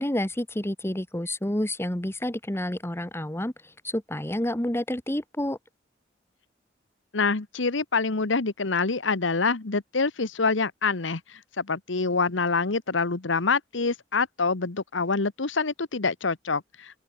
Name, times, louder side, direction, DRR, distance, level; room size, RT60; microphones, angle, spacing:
voice 1, 0.0-3.5 3.8-5.6, left 1 dB, 15° left, 1.6 m, -29 dB
voice 2, 7.1-11.2 11.6-16.6, left 4 dB, 80° left, 1.2 m, -26 dB
open air
head